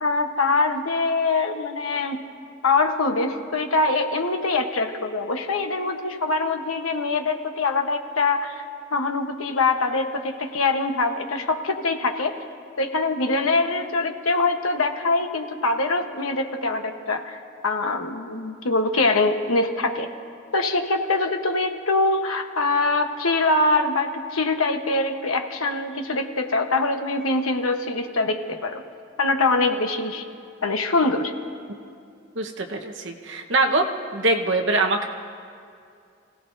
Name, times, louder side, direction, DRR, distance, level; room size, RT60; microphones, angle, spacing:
voice 1, 0.0-2.3 2.6-8.6 8.9-12.3 12.8-17.4 17.6-20.1 20.5-28.8 29.2-30.2 30.6-31.3, left 3 dB, 90° left, 5 dB, 1.1 m, -23 dB
voice 2, 32.3-33.8 34.1-35.1, right 2 dB, 65° right, 3 dB, 1.2 m, -23 dB
29.5 x 17.0 x 2.7 m, 2.4 s
head